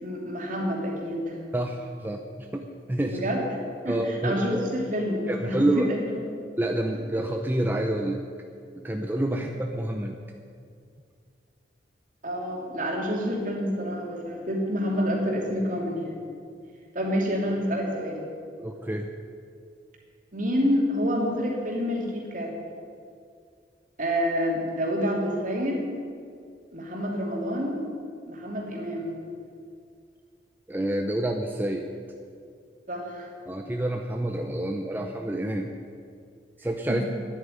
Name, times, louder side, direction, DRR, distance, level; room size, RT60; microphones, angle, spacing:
voice 1, 0.0-1.4 3.1-3.5 3.8-6.2 12.2-16.2 16.9-18.2 20.3-22.5 24.0-25.8 26.7-27.8 28.3-29.2 32.9-33.3 36.9-37.0, equal, 50° right, -1 dB, 2.8 m, -28 dB
voice 2, 1.5-3.2 3.9-4.7 5.3-5.9 6.6-8.2 8.8-10.2 18.6-19.1 30.7-31.9 33.5-35.7 36.6-37.0, right 1 dB, 10° right, 3 dB, 0.6 m, -28 dB
10.5 x 8.8 x 9.9 m, 2.3 s
head